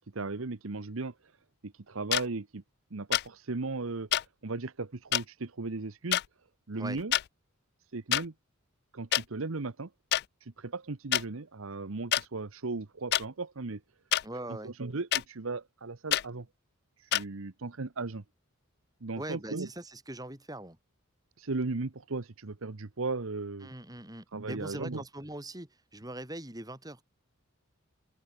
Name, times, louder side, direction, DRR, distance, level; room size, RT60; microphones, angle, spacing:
voice 1, 0.1-1.1 1.6-2.6 2.9-4.1 4.4-6.2 6.7-7.1 7.9-8.3 8.9-9.9 10.4-13.8 14.6-16.5 17.0-18.2 19.0-19.7 21.4-23.7 24.3-25.0, right 3 dB, 70° right, 1.0 m, -36 dB
sound 1, 2.1-2.2 3.1-3.3 4.1-4.2 5.1-5.2 6.1-6.3 7.0-7.2 8.1-8.2 9.1-9.2 10.1-10.2 11.1-11.2 12.1-12.2 13.1-13.2 14.1-14.2 15.1-15.2 16.1-16.2 17.1-17.2, left 13 dB, 50° left, 0.3 m, -26 dB
voice 2, 14.2-14.7 19.2-20.8 23.6-27.0, right 1 dB, 15° right, 5.0 m, -41 dB
head